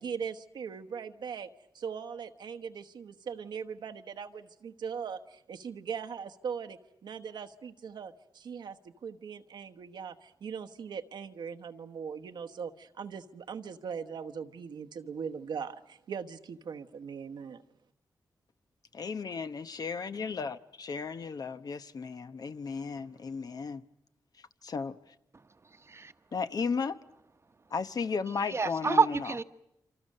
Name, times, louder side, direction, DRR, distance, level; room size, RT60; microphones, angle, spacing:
voice 1, 0.0-1.5 1.7-17.6, right 6 dB, 85° right, 1.1 m, -40 dB
voice 2, 18.9-23.8 24.6-25.0 26.3-27.0 27.7-29.3, left 5 dB, 60° left, 0.9 m, -34 dB
voice 3, 25.8-26.1 28.5-29.4, right 4 dB, 35° right, 1.0 m, -27 dB
27.5 x 25.5 x 6.6 m
cardioid pair, 75°, 8 cm